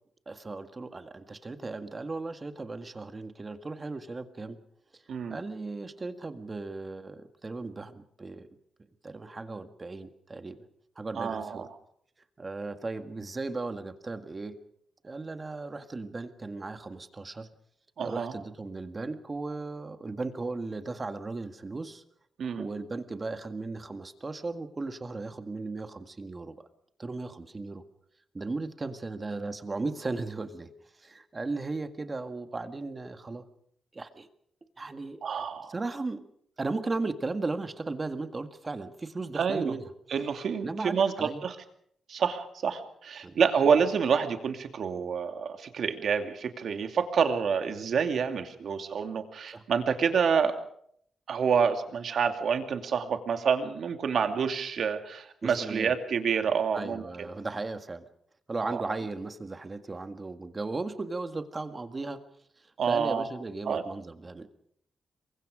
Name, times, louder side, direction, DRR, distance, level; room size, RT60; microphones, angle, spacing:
voice 1, 0.3-4.6 4.9-5.0 5.3-8.5 9.0-10.6 11.0-11.7 12.4-14.6 15.0-17.5 18.0-22.0 22.6-26.6 27.0-27.9 28.3-30.7 31.0-33.4 33.9-34.3 34.8-35.2 35.7-36.2 36.6-39.8 40.6-41.4 43.2-43.4 49.5-49.6 55.4-55.9 56.7-58.0 58.5-62.2 62.9-64.5, right 3 dB, 25° right, 8 dB, 1.8 m, -36 dB
voice 2, 11.2-11.7 18.0-18.3 22.4-22.7 35.2-35.7 39.3-39.7 40.1-41.5 42.1-50.5 51.3-57.0 58.6-58.8 62.8-63.3 63.7-63.8, right 6 dB, 65° right, 6 dB, 2.5 m, -28 dB
28.0 x 23.5 x 5.1 m, 0.68 s
wide cardioid pair, 130°, 0 cm